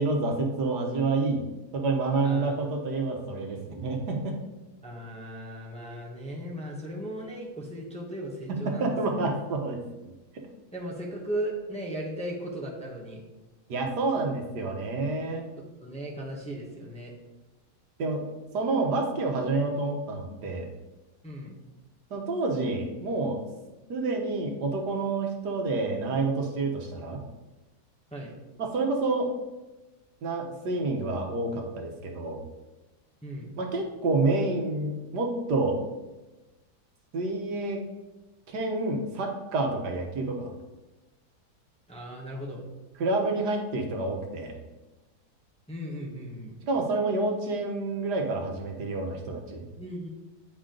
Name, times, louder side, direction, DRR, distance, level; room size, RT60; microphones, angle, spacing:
voice 1, 0.0-1.4 1.7-4.4 8.6-9.8 13.7-15.4 18.0-18.2 18.5-20.7 22.1-23.5 23.9-27.2 28.6-29.3 30.2-32.4 33.6-35.8 37.1-37.8 38.5-40.5 43.0-44.5 46.7-49.6, right 3 dB, 80° right, 2 dB, 1.7 m, -28 dB
voice 2, 2.2-2.7 4.8-9.6 10.7-13.2 15.6-17.1 21.2-21.5 28.1-28.3 33.2-33.5 41.9-42.6 45.7-46.5 49.8-50.1, right 1 dB, 5° left, -3 dB, 1.1 m, -37 dB
8.9 x 5.0 x 3.8 m, 1.1 s
omnidirectional pair, 1.7 m